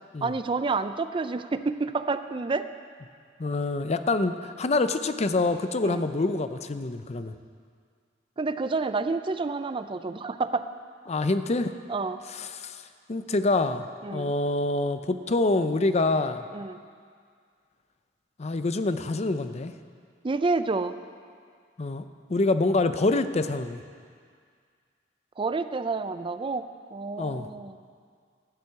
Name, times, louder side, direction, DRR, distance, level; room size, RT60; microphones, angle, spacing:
voice 1, 0.2-2.7 5.8-6.0 8.4-10.7 11.9-12.2 14.0-14.3 16.5-16.8 20.2-20.9 25.4-26.7 26.9-27.8, right 3 dB, 30° right, 11 dB, 0.4 m, -29 dB
voice 2, 3.4-7.3 11.1-11.7 12.3-12.8 13.1-13.8 14.1-16.4 18.4-19.7 21.8-22.0 22.3-23.8 27.2-27.5, left 2 dB, 35° left, 10 dB, 0.6 m, -26 dB
12.5 x 7.7 x 8.2 m, 2.1 s
head